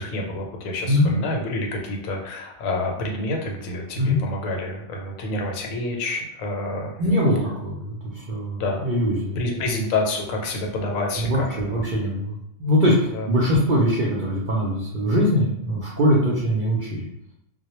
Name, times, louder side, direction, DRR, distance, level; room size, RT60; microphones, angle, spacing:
voice 1, 0.0-6.9 8.6-8.9 9.4-11.6 13.1-13.3, left 2 dB, 85° left, 1 dB, 1.0 m, -28 dB
voice 2, 7.0-9.4 11.2-17.0, equal, 70° right, -4 dB, 0.4 m, -22 dB
2.1 x 2.1 x 2.9 m, 0.78 s
omnidirectional pair, 1.4 m